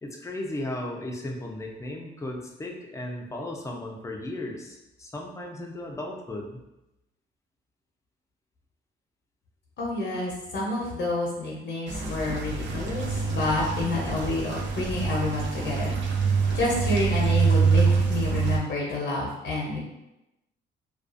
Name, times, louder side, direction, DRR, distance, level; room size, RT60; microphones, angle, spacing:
voice 1, 0.0-6.6, left 1 dB, 15° left, 0 dB, 0.5 m, -35 dB
voice 2, 9.8-16.0 16.5-19.8, left 2 dB, 60° left, -3 dB, 0.7 m, -29 dB
sound 1, 11.9-18.6, right 5 dB, 70° right, 0.4 m, -25 dB
2.4 x 2.4 x 2.5 m, 0.92 s
cardioid pair, 90°, 20 cm